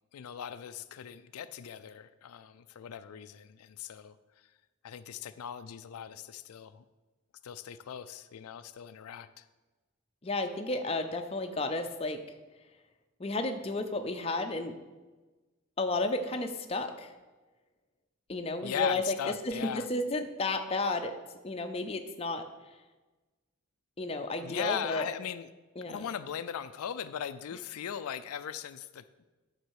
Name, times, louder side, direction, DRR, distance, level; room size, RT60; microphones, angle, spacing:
voice 1, 0.1-4.5 4.8-6.8 7.4-9.5 18.6-19.9 24.4-25.5 25.9-29.2, left 8 dB, 85° left, 12 dB, 0.4 m, -39 dB
voice 2, 10.2-12.2 13.2-14.7 15.8-17.1 18.3-19.0 19.5-21.1 21.4-22.4 24.0-25.1 25.8-26.0, left 2 dB, 25° left, 6 dB, 0.5 m, -32 dB
9.4 x 4.1 x 6.3 m, 1.2 s
head